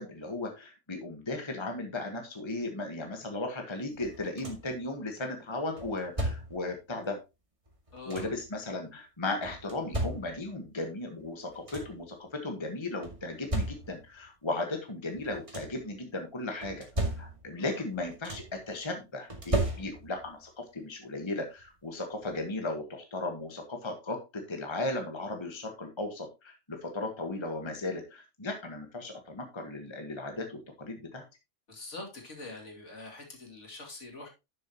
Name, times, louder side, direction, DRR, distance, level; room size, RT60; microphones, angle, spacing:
voice 1, 0.0-7.2 8.0-31.2, left 2 dB, 25° left, 3 dB, 1.4 m, -36 dB
sound 1, 4.0-4.8 5.8-6.7 7.7-8.5 9.4-10.6 11.2-11.3 11.5-12.1 13.0-14.2 15.1-15.9 16.6-17.7 17.9-18.7 19.3-20.3 21.6-21.7 22.2-22.4, right 1 dB, 25° right, 2.2 m, -35 dB
voice 2, 7.9-8.3 17.6-17.7 31.7-34.3, left 2 dB, 80° left, 1 dB, 3.0 m, -44 dB
11.0 x 6.9 x 2.9 m, 0.25 s
omnidirectional pair, 1.2 m